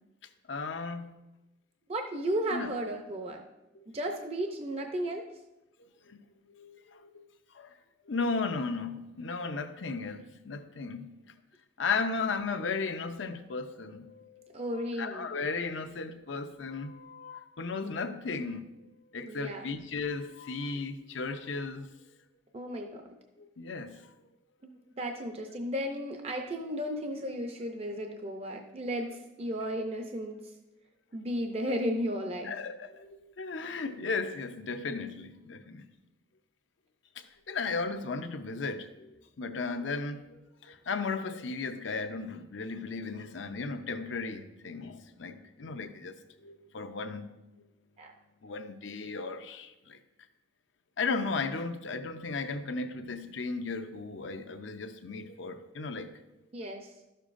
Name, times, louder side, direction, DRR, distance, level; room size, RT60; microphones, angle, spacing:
voice 1, 0.5-1.2 2.5-2.7 3.7-3.9 5.8-6.2 6.5-7.3 7.5-7.8 8.1-11.1 11.8-14.6 15.0-18.7 19.1-21.9 23.4-24.1 32.4-35.9 37.2-47.3 48.4-50.0 51.0-56.1, left 4 dB, 75° left, 0.6 m, -35 dB
voice 2, 1.9-3.4 3.9-5.2 14.5-15.3 19.2-19.7 22.5-23.0 25.0-30.4 31.1-32.5 48.0-48.1 56.5-56.9, equal, 35° right, 0.5 m, -34 dB
12.5 x 6.7 x 2.5 m
head